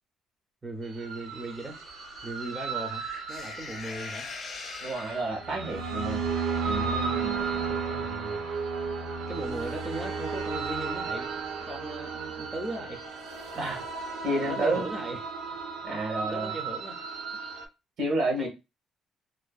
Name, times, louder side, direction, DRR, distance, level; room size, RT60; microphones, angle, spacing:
voice 1, 0.6-1.8 2.2-4.3 7.0-8.4 9.3-11.3 11.6-13.0 14.4-15.2 16.2-17.0 18.4-18.5, right 2 dB, 15° right, 0.5 m, -38 dB
sound 1, 0.8-17.6, right 5 dB, 85° right, 0.5 m, -34 dB
sound 2, 1.3-5.6, left 5 dB, 45° left, 0.4 m, -43 dB
voice 2, 4.8-6.3 6.6-7.5 13.6-13.8 14.2-14.8 15.8-16.5 18.0-18.5, right 1 dB, 65° right, 1.0 m, -30 dB
2.5 x 2.4 x 2.2 m
cardioid pair, 115°, 0 cm